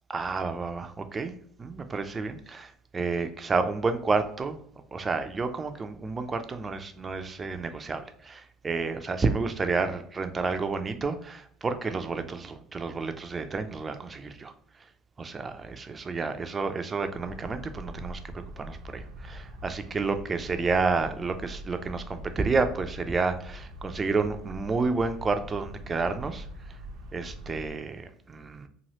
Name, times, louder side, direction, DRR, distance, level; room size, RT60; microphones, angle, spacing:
voice 1, 0.1-1.3 1.6-4.6 4.9-14.5 15.2-26.5 27.1-28.7, right 4 dB, 25° right, 8 dB, 0.3 m, -30 dB
sound 1, 17.1-27.7, equal, 80° right, 0.5 m, -43 dB
3.0 x 2.3 x 2.8 m, 0.63 s
cardioid pair, 120°, 0 cm